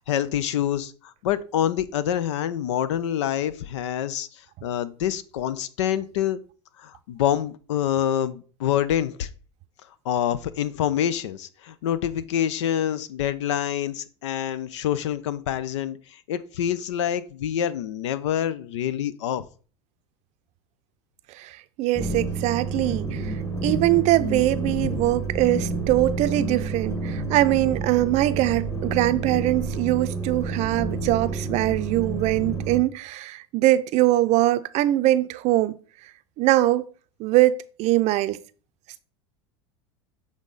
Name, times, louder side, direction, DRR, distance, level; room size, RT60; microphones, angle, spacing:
voice 1, 0.1-0.9 1.2-4.3 4.6-6.4 6.8-9.3 10.1-16.0 16.3-19.4, left 10 dB, 80° left, 0.6 m, -26 dB
voice 2, 21.3-23.3 23.6-35.7 36.4-36.8 37.2-38.4, right 16 dB, 50° right, 0.5 m, -22 dB
sound 1, 21.9-32.8, right 3 dB, 20° left, 1.4 m, -29 dB
7.3 x 3.6 x 3.9 m
hypercardioid pair, 100°, 15 cm